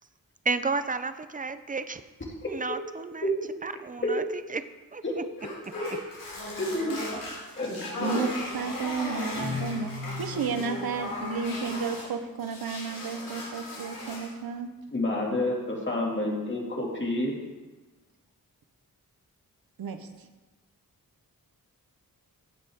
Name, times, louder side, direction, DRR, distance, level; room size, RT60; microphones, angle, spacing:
voice 1, 0.5-2.0 2.5-3.2 3.6-4.2 4.9-5.0, right 4 dB, 25° right, 12 dB, 0.6 m, -31 dB
sound 1, 5.4-12.1 12.4-14.4, left 1 dB, 70° left, 3.3 m, -37 dB
voice 2, 6.6-7.0 7.6-8.3 14.9-17.3, left 1 dB, 35° left, -2 dB, 2.5 m, -29 dB
voice 3, 8.0-9.9 10.2-14.7 19.8-20.3, right 5 dB, 90° right, 8 dB, 0.9 m, -32 dB
Guitar, 9.3-11.0, left 4 dB, 50° left, 3.1 m, -37 dB
15.5 x 6.7 x 3.7 m, 1.2 s
wide cardioid pair, 80°, 35 cm